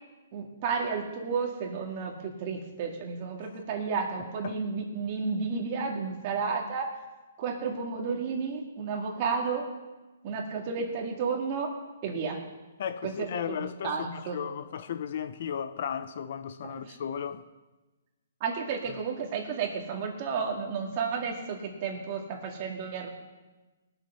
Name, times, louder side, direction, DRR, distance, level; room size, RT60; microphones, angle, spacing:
voice 1, 0.3-6.9 7.4-9.6 10.2-11.8 12.0-12.4 13.0-14.4 16.6-17.0 18.4-23.1, right 5 dB, 30° right, 2.0 m, -32 dB
voice 2, 12.8-17.4, left 8 dB, 50° left, 0.6 m, -35 dB
19.5 x 7.2 x 5.6 m
hypercardioid pair, 165°, 0 cm